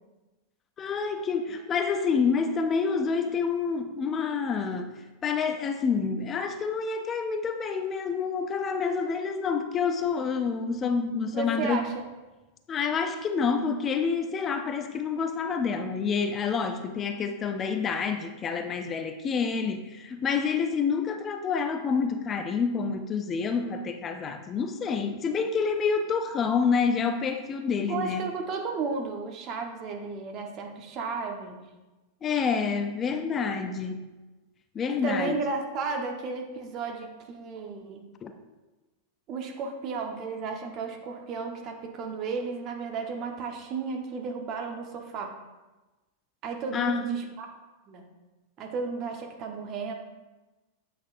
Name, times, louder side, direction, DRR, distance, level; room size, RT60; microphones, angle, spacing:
voice 1, 0.8-11.9 12.7-28.3 32.2-34.1 34.7-35.4 38.2-38.3 46.7-47.1, left 5 dB, 30° left, 7 dB, 0.5 m, -28 dB
voice 2, 11.3-12.1 27.9-31.6 34.9-38.0 39.3-45.3 46.4-47.5 47.9-48.1 48.6-49.9, right 4 dB, 40° right, 3 dB, 1.1 m, -33 dB
8.3 x 5.8 x 2.6 m, 1.1 s
hypercardioid pair, 95°, 0 cm